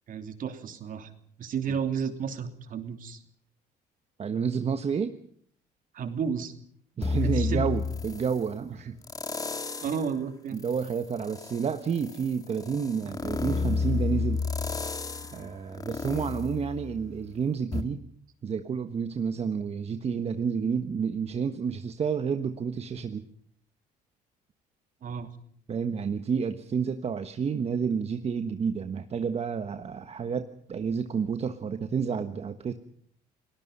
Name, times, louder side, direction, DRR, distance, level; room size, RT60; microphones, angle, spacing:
voice 1, 0.1-1.1 1.4-3.2 5.9-6.5 7.2-7.7 9.8-10.6 25.0-25.3, right 6 dB, 55° right, 7 dB, 3.0 m, -32 dB
voice 2, 4.2-5.1 7.0-9.0 10.5-14.4 15.3-18.0 18.4-23.2 25.7-32.7, right 6 dB, 40° right, 8 dB, 1.3 m, -30 dB
sound 1, 7.0-8.4 9.0-10.1 10.6-17.3 17.7-17.8, left 4 dB, 20° left, 1.9 m, -31 dB
30.0 x 19.5 x 5.5 m, 0.63 s
cardioid pair, 110°, 17 cm